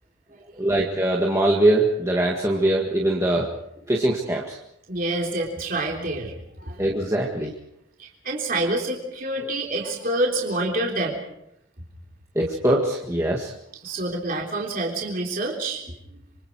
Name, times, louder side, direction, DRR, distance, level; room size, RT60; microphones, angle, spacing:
voice 1, 0.5-3.5 3.9-4.6 6.8-7.5 12.4-13.5, right 1 dB, 15° right, -2 dB, 1.8 m, -22 dB
voice 2, 4.9-7.0 8.0-11.2 13.8-16.2, right 2 dB, 40° right, -1 dB, 3.6 m, -27 dB
27.0 x 25.0 x 4.8 m, 0.79 s
head